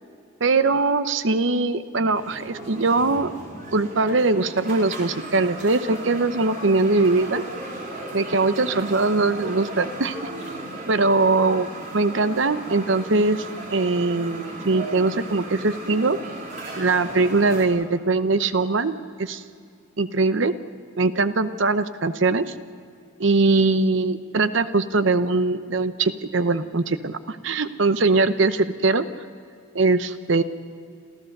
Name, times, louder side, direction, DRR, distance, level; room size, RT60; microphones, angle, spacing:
voice 1, 0.4-3.3 3.7-7.4 8.1-10.2 10.9-11.7 11.9-13.4 13.7-16.2 16.8-19.4 20.0-20.5 21.0-22.5 23.2-29.0 29.7-30.4, right 3 dB, 65° right, 12 dB, 0.8 m, -21 dB
sound 1, 2.1-17.7, right 2 dB, 40° right, 3.4 m, -36 dB
27.0 x 15.0 x 6.7 m, 2.3 s
head